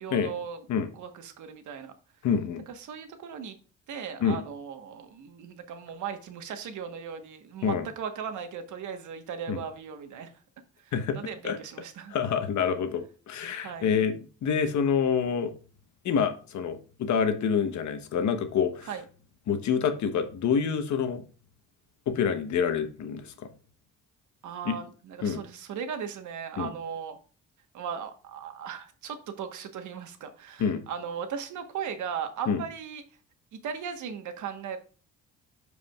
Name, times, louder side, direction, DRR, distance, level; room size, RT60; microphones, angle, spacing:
voice 1, 0.0-0.7 0.9-1.9 2.7-3.6 3.9-10.3 10.8-12.1 13.6-13.9 18.8-19.0 24.4-27.2 27.7-33.0 33.5-34.8, right 7 dB, 75° right, 7 dB, 1.2 m, -37 dB
voice 2, 2.2-2.6 4.2-4.4 7.6-7.9 9.5-9.6 10.9-11.2 11.4-11.6 12.1-15.5 16.0-18.9 19.5-21.2 22.1-23.3 24.6-24.8 25.2-25.4 26.6-26.7 30.6-30.8 32.5-32.6, left 6 dB, 70° left, 8 dB, 1.1 m, -27 dB
12.5 x 4.9 x 2.3 m, 0.37 s
cardioid pair, 90°, 30 cm